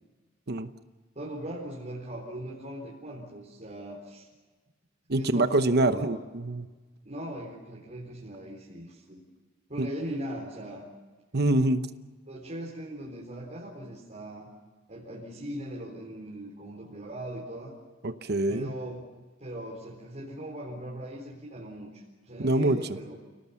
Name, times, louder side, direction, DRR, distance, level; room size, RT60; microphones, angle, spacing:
voice 1, 1.1-4.3 5.1-6.1 7.0-9.2 9.7-10.9 12.3-14.5 14.9-17.7 18.5-19.1 19.4-23.2, right 1 dB, 35° right, -4 dB, 4.2 m, -39 dB
voice 2, 5.1-6.7 9.8-9.9 11.3-11.9 18.0-18.7 22.4-22.9, right 2 dB, 55° right, 11 dB, 1.0 m, -25 dB
30.0 x 18.0 x 7.1 m, 1.3 s
head